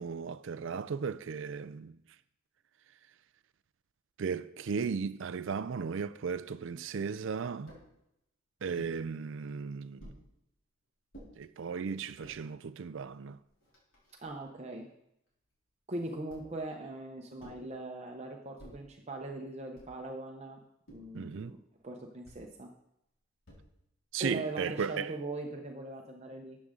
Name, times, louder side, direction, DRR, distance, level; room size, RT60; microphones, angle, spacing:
voice 1, 0.0-2.0 4.2-7.7 8.6-10.1 11.4-13.4 21.1-21.5 24.1-25.1, right 6 dB, 70° right, 0.4 m, -36 dB
sound 1, 7.7-7.9 8.8-9.0 10.0-10.2 11.1-11.3 12.0-12.4 13.1-13.2 13.5-14.5 16.3-16.7 17.4-17.7 18.6-18.9 19.8-20.1 20.9-21.2 22.2-22.5 23.4-23.9, equal, 75° left, 4.5 m, -53 dB
voice 2, 14.2-14.9 15.9-20.6 20.9-21.6 21.8-22.7 24.2-26.6, right 2 dB, 35° right, 0.9 m, -40 dB
13.0 x 8.5 x 3.8 m
head